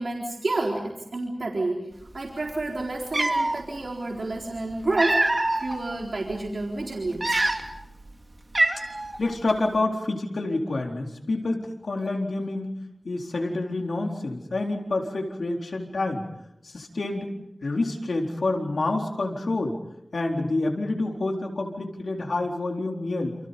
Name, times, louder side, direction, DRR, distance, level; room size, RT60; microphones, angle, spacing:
voice 1, 0.0-1.9 2.1-5.3 5.6-7.4, right 2 dB, 70° right, -1 dB, 4.1 m, -29 dB
Cat, 2.6-2.7 3.1-3.6 4.6-5.8 6.3-6.5 7.1-7.9 8.1-8.2 8.5-9.2, right 2 dB, 40° right, 2.9 m, -24 dB
voice 2, 9.2-12.8 13.0-16.2 16.6-17.3 17.6-19.8 20.1-23.4, left 2 dB, 90° left, 1 dB, 4.2 m, -28 dB
29.5 x 28.5 x 5.4 m, 0.85 s
wide cardioid pair, 70°, 0 cm